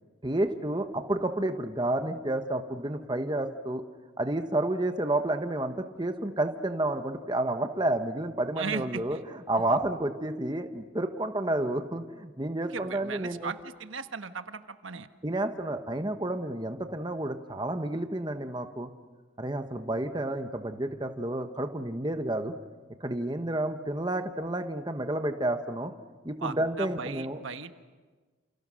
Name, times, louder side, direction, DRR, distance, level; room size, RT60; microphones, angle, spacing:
voice 1, 0.2-3.8 4.2-9.2 9.5-13.5 15.2-18.9 19.4-22.5 23.0-25.9 26.2-27.4, right 1 dB, 20° right, 7 dB, 1.2 m, -30 dB
voice 2, 8.6-9.2 9.7-9.8 12.7-15.1 26.4-27.7, right 5 dB, 80° right, 8 dB, 1.3 m, -37 dB
29.0 x 29.0 x 6.4 m, 1.3 s
head